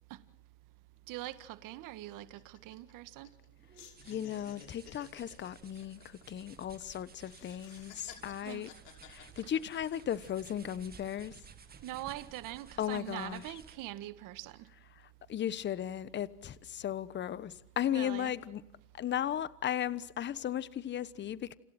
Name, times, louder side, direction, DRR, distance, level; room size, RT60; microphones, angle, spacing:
sound 1, 1.0-1.1 1.3-1.5 1.9-3.5 3.7-6.8 7.2-10.3 10.8-11.4, left 9 dB, 85° left, 5.8 m, -55 dB
voice 1, 1.1-3.3 8.4-8.7 11.8-14.7 17.9-18.3, right 15 dB, 40° right, 1.7 m, -43 dB
sound 2, 3.6-14.0, right 6 dB, 20° right, 2.3 m, -56 dB
voice 2, 4.0-8.7 9.0-11.3 12.8-13.6 15.0-18.6 18.9-21.6, left 10 dB, 25° left, 1.1 m, -36 dB
30.0 x 28.5 x 4.4 m
supercardioid pair, 120°, 47 cm